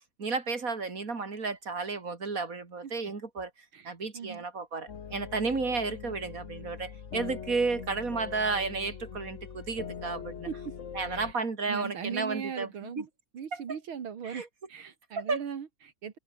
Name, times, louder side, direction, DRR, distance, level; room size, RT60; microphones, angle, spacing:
voice 1, 0.2-3.5 3.8-10.5 10.9-12.7 13.0-13.1 13.5-13.8 14.2-14.5 15.2-15.4, right 4 dB, 40° right, 3.0 m, -32 dB
voice 2, 3.7-4.4 10.5-10.6 11.1-11.4 11.7-13.1 13.3-14.4 14.7-16.2, right 7 dB, 85° right, 2.8 m, -39 dB
sound 1, 4.9-11.3, left 7 dB, 40° left, 1.4 m, -42 dB
omnidirectional pair, 2.2 m